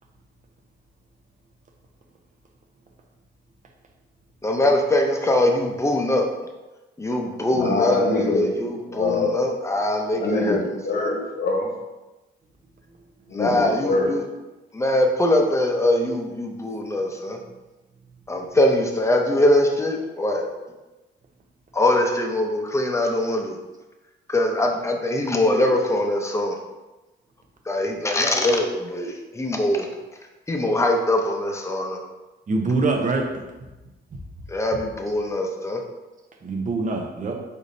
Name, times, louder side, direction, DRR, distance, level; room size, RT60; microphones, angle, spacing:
voice 1, 4.4-6.3 7.0-10.6 10.9-11.0 13.3-14.2 14.7-17.4 18.3-20.4 21.7-23.6 24.3-26.6 27.7-29.9 30.5-32.0 34.5-35.8, left 1 dB, 15° left, 0.7 m, -22 dB
voice 2, 7.5-8.5 8.9-9.4 10.1-11.7 13.3-14.2, left 3 dB, 50° left, 1.1 m, -24 dB
voice 3, 32.5-33.4 34.1-34.2 34.7-34.8 36.4-37.3, right 3 dB, 40° right, 0.8 m, -24 dB
4.9 x 4.0 x 2.7 m
cardioid pair, 90°, 20 cm